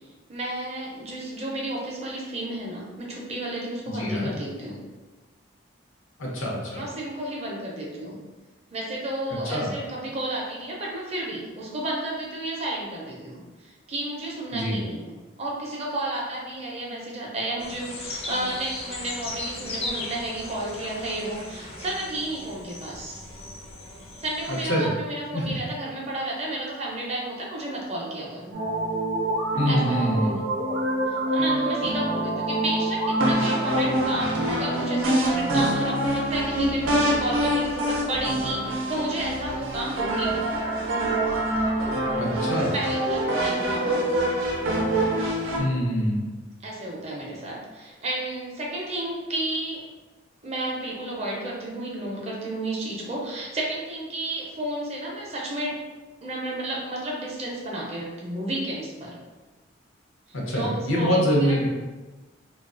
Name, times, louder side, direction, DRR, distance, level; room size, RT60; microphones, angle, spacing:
voice 1, 0.3-4.8 6.7-8.2 8.7-23.2 24.2-28.5 29.7-30.4 31.1-40.4 42.5-44.3 46.6-49.8 50.4-55.8 56.2-59.2 60.5-61.7, right 1 dB, 35° right, -3 dB, 0.5 m, -32 dB
voice 2, 3.9-4.3 6.2-6.8 9.5-9.7 14.5-14.8 24.5-24.9 25.3-25.6 29.6-30.3 42.2-42.7 45.6-46.3 60.3-61.7, equal, 85° left, -3 dB, 0.7 m, -25 dB
sound 1, 17.6-24.6, left 2 dB, 30° left, 0.4 m, -37 dB
sound 2, 28.5-45.6, right 1 dB, 80° right, 0.5 m, -25 dB
2.3 x 2.3 x 2.4 m, 1.3 s
head